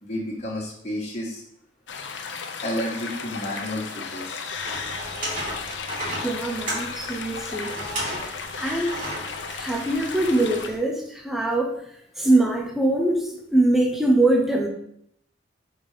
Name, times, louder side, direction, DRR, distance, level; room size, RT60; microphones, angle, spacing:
voice 1, 0.0-1.4 2.6-4.4, left 1 dB, 35° left, -4 dB, 1.6 m, -31 dB
sound 1, 1.9-10.7, left 5 dB, 75° left, 0.6 m, -35 dB
sound 2, 4.5-10.7, right 1 dB, 45° right, 2.7 m, -34 dB
voice 2, 6.2-7.7 8.6-9.0 9.6-11.8 12.2-14.7, right 2 dB, ahead, 1 dB, 0.7 m, -22 dB
5.3 x 4.2 x 5.0 m, 0.72 s
head